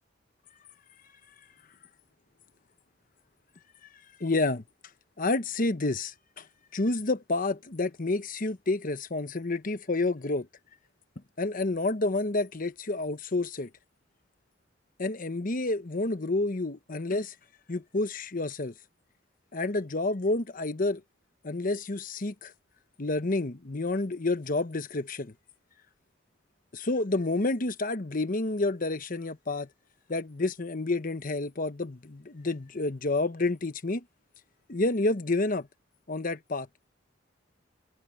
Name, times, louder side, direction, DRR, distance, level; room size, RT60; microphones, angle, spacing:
voice 1, 4.2-4.6 5.2-6.5 6.7-10.5 11.4-13.7 15.0-17.3 17.7-18.7 19.5-21.0 21.4-22.5 23.0-25.3 26.7-29.7 30.1-34.0 34.7-35.7 36.1-36.7, left 2 dB, 45° left, 1.0 m, -29 dB
head